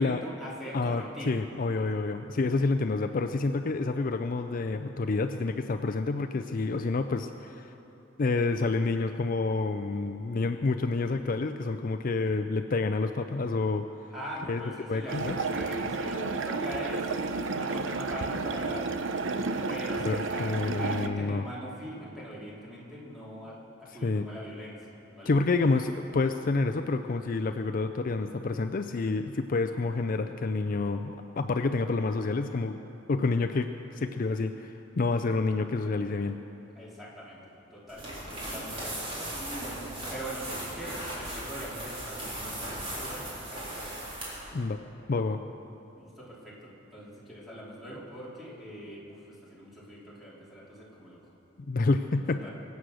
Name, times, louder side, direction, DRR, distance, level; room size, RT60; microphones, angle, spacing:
voice 1, 0.0-1.3 14.1-17.1 17.5-18.9 19.7-24.8 25.1-25.3 25.7-25.8 36.7-39.3 40.1-44.0 45.9-51.2 52.3-52.5, equal, ahead, -7 dB, 3.1 m, -42 dB
voice 2, 0.7-7.7 8.2-13.9 14.5-14.6 14.9-15.4 20.0-21.5 24.0-24.3 25.3-32.8 33.1-33.7 33.9-36.4 44.5-44.8 45.1-45.4 51.7-52.4, left 3 dB, 45° left, 7 dB, 0.4 m, -28 dB
sound 1, 15.1-21.1, right 3 dB, 80° right, 0.7 m, -31 dB
sound 2, 37.9-44.5, right 1 dB, 30° right, 4.3 m, -37 dB
24.0 x 8.2 x 6.3 m, 3.0 s
head